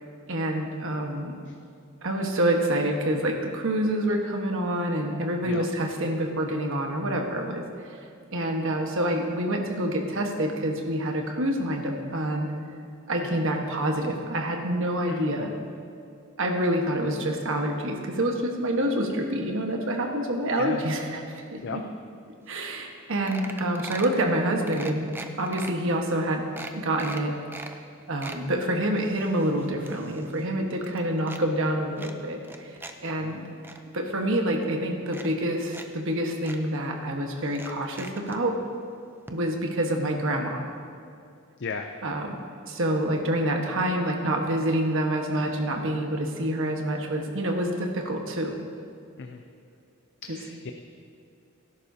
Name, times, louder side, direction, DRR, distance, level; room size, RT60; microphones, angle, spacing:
voice 1, 0.3-1.3 2.0-7.6 8.3-12.5 13.1-15.5 16.4-21.2 21.5-21.8 22.5-25.1 25.4-27.3 28.1-32.7 33.0-33.4 33.9-38.6 39.3-40.6 42.0-42.3 42.6-48.6 50.3-50.4, right 1 dB, 60° right, 2 dB, 1.3 m, -27 dB
voice 2, 15.0-15.5 20.6-20.8 21.6-21.8 33.2-33.5 41.6-41.9 49.2-49.4 50.2-50.7, left 4 dB, 55° left, 5 dB, 0.5 m, -36 dB
sound 1, 22.6-22.7 22.9-23.0 23.3-24.2 24.7-25.7 26.2-26.3 26.6-27.7 28.0-28.4 28.9-30.5 30.7-31.4 32.0-32.9 33.3-33.8 34.6-34.7 35.1-35.9 36.1-36.2 36.4-36.6 37.5-38.4 39.3-39.4 39.7-39.8, right 2 dB, 10° right, 0.5 m, -41 dB
17.5 x 11.0 x 2.8 m, 2.4 s
head